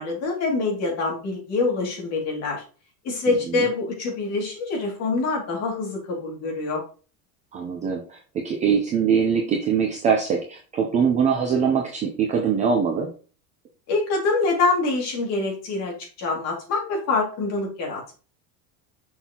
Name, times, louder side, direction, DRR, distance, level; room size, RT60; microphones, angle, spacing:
voice 1, 0.0-2.6 3.0-6.8 13.9-18.1, left 3 dB, 35° left, 0 dB, 2.3 m, -25 dB
voice 2, 3.3-3.7 7.5-13.1, right 6 dB, 15° right, 1 dB, 0.4 m, -23 dB
6.2 x 5.5 x 2.8 m, 0.37 s
supercardioid pair, 170°, 44 cm